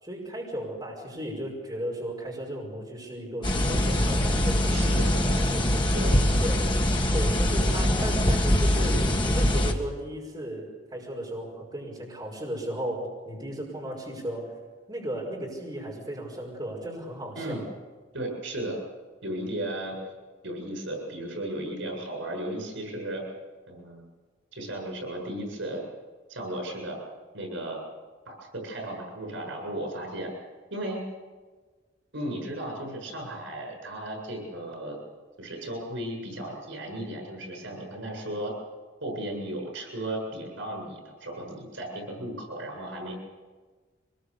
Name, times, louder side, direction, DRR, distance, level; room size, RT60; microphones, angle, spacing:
voice 1, 0.0-5.7 6.4-6.7 7.1-14.6 14.9-17.6, right 1 dB, 20° right, -3 dB, 5.3 m, -35 dB
sound 1, 3.4-9.7, left 1 dB, 25° left, 1.6 m, -23 dB
voice 2, 4.7-5.4 5.9-6.2 17.4-17.6 18.1-18.8 19.2-20.0 20.4-23.2 23.7-24.1 24.5-25.8 26.3-27.0 27.3-27.8 28.2-30.3 30.7-31.0 32.1-35.0 35.4-38.5 39.0-43.1, right 1 dB, 85° right, 1 dB, 7.5 m, -35 dB
24.0 x 21.5 x 6.9 m, 1.4 s
head